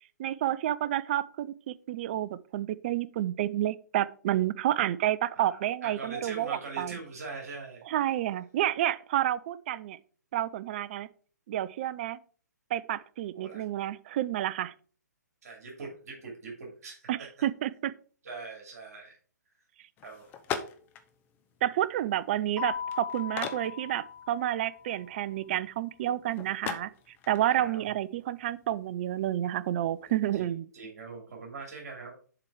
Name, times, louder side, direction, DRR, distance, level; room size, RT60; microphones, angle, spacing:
voice 1, 0.2-7.0 7.9-10.0 10.3-11.1 11.5-12.2 12.7-14.7 17.1-17.9 21.6-30.7, right 12 dB, 35° right, 0.4 m, -30 dB
voice 2, 5.3-7.8 13.3-13.6 15.4-17.0 18.2-19.1 20.0-20.3 27.5-27.8 30.3-32.1, right 3 dB, 55° right, 2.7 m, -42 dB
sound 1, 20.0-30.4, left 7 dB, 20° left, 0.7 m, -43 dB
Keyboard (musical), 22.6-25.1, left 7 dB, 5° right, 3.7 m, -39 dB
7.5 x 4.5 x 4.7 m
figure-of-eight pair, 130°, 10 cm